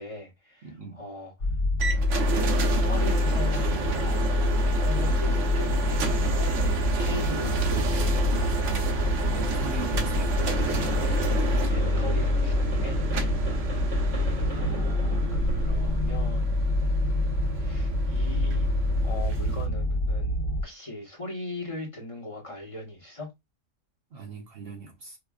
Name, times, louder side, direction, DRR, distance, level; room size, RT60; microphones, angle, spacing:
voice 1, 0.0-1.5 2.0-8.6 11.7-13.0 14.5-16.6 17.6-18.7 19.0-20.4 20.6-23.3, left 2 dB, 30° left, 1.1 m, -39 dB
voice 2, 0.6-1.0 9.3-10.5 24.1-25.2, right 4 dB, 55° right, 0.8 m, -40 dB
sound 1, 1.4-20.6, left 2 dB, 70° left, 1.1 m, -26 dB
sound 2, 1.8-19.7, right 5 dB, 75° right, 1.1 m, -32 dB
sound 3, 10.4-16.4, right 2 dB, 30° right, 1.6 m, -35 dB
5.0 x 2.4 x 2.3 m
omnidirectional pair, 1.3 m